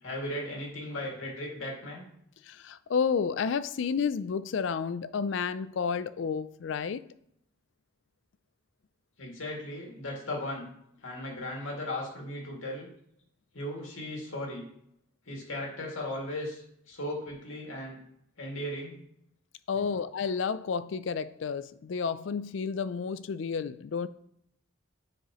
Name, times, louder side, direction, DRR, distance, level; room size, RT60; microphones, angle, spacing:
voice 1, 0.0-2.1 9.2-10.7 11.0-12.9 13.5-14.6 15.3-18.0 18.4-19.0 19.8-19.9, left 1 dB, 85° left, 2.3 m, -37 dB
voice 2, 2.4-7.0 19.7-24.1, left 6 dB, 65° left, 0.4 m, -31 dB
9.6 x 4.8 x 3.0 m
head